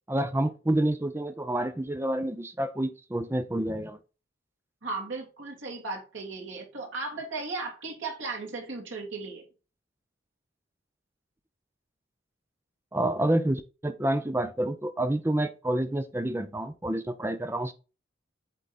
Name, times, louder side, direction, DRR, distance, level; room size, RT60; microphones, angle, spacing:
voice 1, 0.1-4.0 12.9-17.7, right 1 dB, 15° right, 0.5 m, -28 dB
voice 2, 4.8-9.5, right 3 dB, 90° right, 2.5 m, -36 dB
8.3 x 3.8 x 4.0 m
head